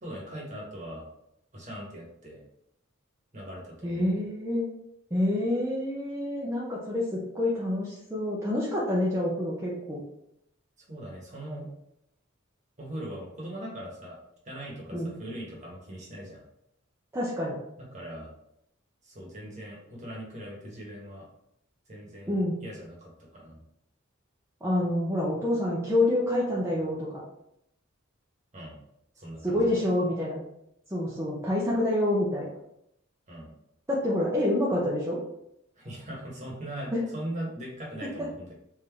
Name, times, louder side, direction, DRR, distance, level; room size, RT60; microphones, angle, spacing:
voice 1, 0.0-1.1 1.5-2.4 3.3-4.2 10.9-11.7 12.8-14.2 14.4-16.4 17.8-18.3 19.0-21.3 21.9-23.6 28.5-28.8 29.2-29.7 33.3-33.5 35.8-38.5, right 1 dB, 35° right, -3 dB, 1.2 m, -40 dB
voice 2, 3.8-4.7 5.1-7.0 7.3-10.0 14.9-15.1 17.1-17.6 22.3-22.6 24.6-27.1 29.4-30.4 30.9-32.5 33.9-35.2 36.9-37.0 38.2-38.3, left 1 dB, 15° right, -6 dB, 0.6 m, -27 dB
3.7 x 2.6 x 3.4 m, 0.78 s
head